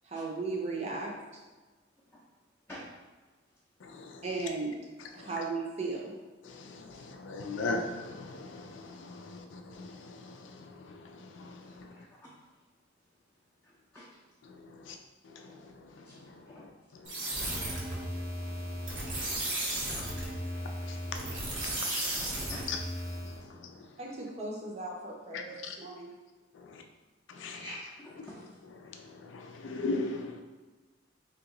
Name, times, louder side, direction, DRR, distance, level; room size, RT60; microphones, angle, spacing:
voice 1, 0.0-1.1 4.2-4.7 5.1-6.2 24.0-26.1, right 3 dB, 35° right, -1 dB, 0.6 m, -36 dB
voice 2, 3.8-4.2 5.2-5.3 6.4-12.0 14.4-15.0 15.2-17.6 18.0-22.8 23.1-23.9 25.3-25.8 26.5-26.8 27.3-27.6 28.2-28.3 28.8-30.4, left 3 dB, 75° left, 4 dB, 0.4 m, -41 dB
voice 3, 11.6-12.3 13.6-14.1 16.1-16.2 16.5-16.7 17.2-17.6 18.1-18.2 18.4-18.5 22.5-22.7 27.5-28.5, equal, 10° left, -7 dB, 0.5 m, -48 dB
sound 1, 17.0-23.4, right 1 dB, 85° right, 1.1 m, -35 dB
3.0 x 2.9 x 3.8 m, 1.3 s
head